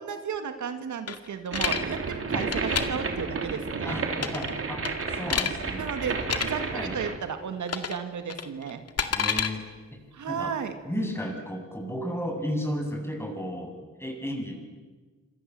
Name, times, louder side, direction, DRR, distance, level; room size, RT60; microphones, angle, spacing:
voice 1, 0.0-4.0 5.8-8.8 10.1-10.7, right 6 dB, 80° right, 7 dB, 2.4 m, -34 dB
sound 1, 1.1-1.8 2.4-2.8 4.2-4.5 4.8-5.5 6.2-6.5 7.7-8.0 8.3-9.5, left 7 dB, 55° left, 2.3 m, -28 dB
sound 2, 1.5-7.2, right 4 dB, 50° right, 3.6 m, -31 dB
voice 2, 3.8-5.9 6.7-7.0 9.1-9.6 9.9-10.0 10.3-10.5 10.8-14.5, equal, 10° left, 2 dB, 7.9 m, -33 dB
27.5 x 26.5 x 7.9 m, 1.3 s
cardioid pair, 95°, 29 cm